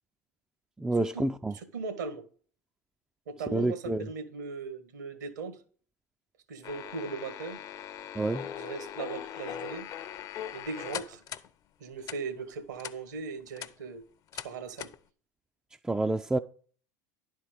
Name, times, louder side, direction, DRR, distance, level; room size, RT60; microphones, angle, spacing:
voice 1, 0.8-1.5 3.5-4.1 8.1-8.5 15.8-16.4, right 2 dB, 10° right, 0.4 m, -28 dB
voice 2, 1.5-2.2 3.3-5.6 6.5-7.6 8.6-9.9 10.5-11.2 11.8-14.0 14.4-14.9, right 4 dB, 75° right, 1.5 m, -38 dB
sound 1, 6.6-11.5 12.0-12.2 12.8-13.0 13.4-13.7 14.3-14.5 14.8-15.0, left 9 dB, 40° left, 0.7 m, -40 dB
11.0 x 4.5 x 6.5 m
hypercardioid pair, 80°, 9 cm